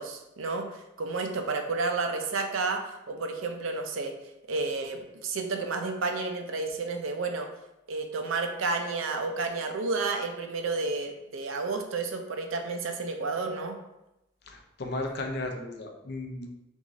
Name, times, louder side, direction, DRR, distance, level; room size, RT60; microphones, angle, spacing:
voice 1, 0.0-2.8 3.1-4.2 4.5-7.5 7.9-13.8, right 3 dB, 85° right, 5 dB, 0.5 m, -31 dB
voice 2, 14.4-16.5, left 2 dB, 55° left, 3 dB, 0.6 m, -35 dB
3.6 x 3.0 x 3.7 m, 0.91 s
head